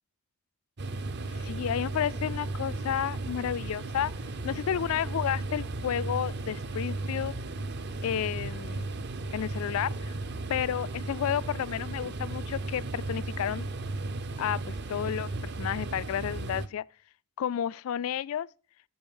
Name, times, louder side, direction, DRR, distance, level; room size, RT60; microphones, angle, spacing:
sound 1, 0.8-16.7, right 2 dB, 50° right, 0.6 m, -35 dB
voice 1, 1.3-4.1 4.4-7.3 8.0-8.9 9.3-10.1 10.5-13.7 14.4-16.8 17.4-18.5, left 9 dB, 70° left, 0.3 m, -31 dB
8.6 x 5.3 x 5.4 m
head